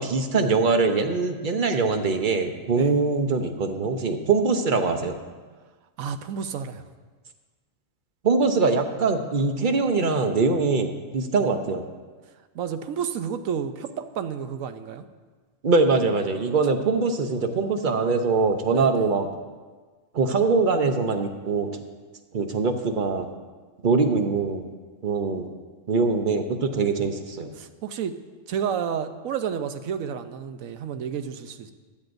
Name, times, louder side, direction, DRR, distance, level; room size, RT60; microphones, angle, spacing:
voice 1, 0.0-5.2 8.2-11.8 15.6-19.3 20.1-21.8 22.3-23.3 23.8-24.7 25.0-25.5 25.9-27.5, right 4 dB, 45° right, 6 dB, 0.8 m, -23 dB
voice 2, 6.0-6.8 11.4-11.5 12.5-15.1 18.7-19.1 27.5-28.2 28.5-31.7, right 7 dB, 75° right, 10 dB, 1.1 m, -31 dB
15.5 x 12.0 x 2.6 m, 1.4 s
omnidirectional pair, 1.5 m